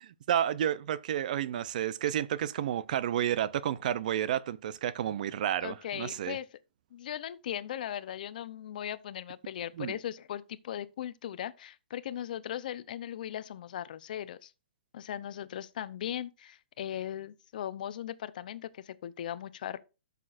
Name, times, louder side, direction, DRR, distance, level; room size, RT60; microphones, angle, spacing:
voice 1, 0.3-6.4 9.8-10.0, right 10 dB, 50° right, 0.5 m, -31 dB
voice 2, 5.6-6.5 6.9-14.5 14.9-19.8, left 10 dB, 50° left, 0.6 m, -38 dB
12.5 x 6.7 x 2.5 m
hypercardioid pair, 165°, 6 cm